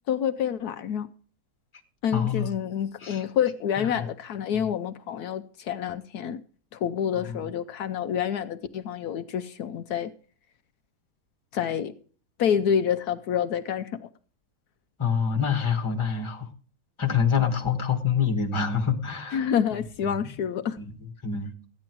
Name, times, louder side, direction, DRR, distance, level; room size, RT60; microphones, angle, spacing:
voice 1, 0.1-1.1 2.0-6.4 6.7-10.1 11.5-11.9 12.4-14.1 19.3-20.8, left 8 dB, 75° left, 1.2 m, -28 dB
voice 2, 2.1-2.5 3.0-3.2 3.8-4.0 4.5-4.6 7.1-7.5 15.0-16.5 17.0-19.5 20.0-20.1 20.8-20.9 21.2-21.5, left 6 dB, 20° left, 1.5 m, -26 dB
14.5 x 9.6 x 4.6 m
omnidirectional pair, 1.7 m